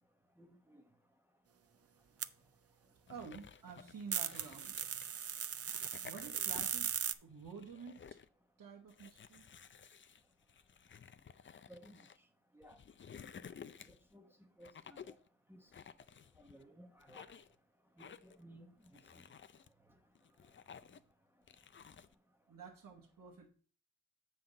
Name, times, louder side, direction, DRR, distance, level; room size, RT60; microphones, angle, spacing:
voice 1, 0.4-0.8 11.7-12.0 12.5-12.8 14.1-14.3 14.6-15.2 15.5-15.6 16.4-17.3 18.0-18.7, equal, 5° right, 0.9 m, -57 dB
sound 1, 2.2-2.3 4.1-7.1, right 8 dB, 45° right, 0.4 m, -38 dB
sound 2, 3.1-5.2 5.6-7.0 7.3-8.3 8.9-12.2 12.6-14.1 14.6-15.3 15.7-16.6 17.0-17.6 18.0-18.4 18.8-19.7 20.2-21.1 21.5-22.1, left 7 dB, 35° left, 0.4 m, -55 dB
voice 2, 3.1-5.1 5.5-5.6 6.0-6.9 7.2-8.2 8.6-9.4 22.5-23.5, right 6 dB, 70° right, 1.2 m, -50 dB
7.7 x 5.6 x 3.8 m
wide cardioid pair, 115°, 34 cm